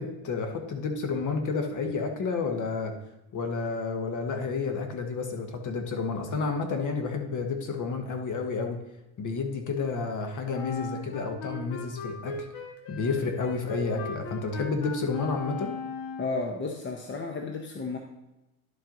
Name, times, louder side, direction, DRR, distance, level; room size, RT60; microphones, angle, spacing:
voice 1, 0.0-2.9 3.3-8.8 9.2-12.4 12.9-15.7, left 4 dB, 45° left, 5 dB, 1.4 m, -30 dB
Wind instrument woodwind instrument, 10.5-16.5, left 3 dB, 70° left, 1.5 m, -38 dB
voice 2, 16.2-18.0, left 3 dB, 25° left, 3 dB, 0.8 m, -33 dB
11.0 x 4.5 x 3.9 m, 0.97 s
supercardioid pair, 105°, 43 cm